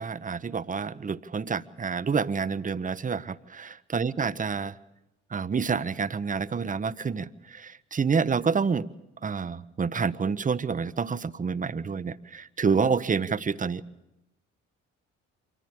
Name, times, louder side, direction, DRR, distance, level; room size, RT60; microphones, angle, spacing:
voice 1, 0.0-3.7 3.9-4.7 5.3-8.9 9.2-13.8, right 5 dB, 20° right, 16 dB, 0.7 m, -28 dB
25.0 x 14.5 x 8.6 m, 0.91 s
hypercardioid pair, 50°, 37 cm